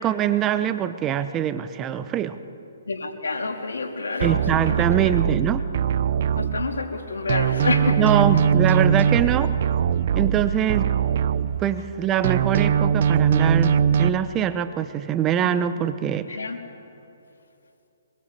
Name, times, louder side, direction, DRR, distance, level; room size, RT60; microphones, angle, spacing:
voice 1, 0.0-2.4 4.2-5.6 8.0-9.5 10.1-10.9 11.6-16.3, right 9 dB, 20° right, 12 dB, 0.9 m, -23 dB
voice 2, 2.8-4.9 6.4-8.1 16.3-16.6, left 3 dB, 85° left, 2 dB, 3.6 m, -28 dB
sound 1, 4.2-7.0 7.3-11.9 12.2-14.1, right 8 dB, 50° right, 0.7 m, -21 dB
24.0 x 21.5 x 8.6 m, 2.8 s
hypercardioid pair, 150°, 0 cm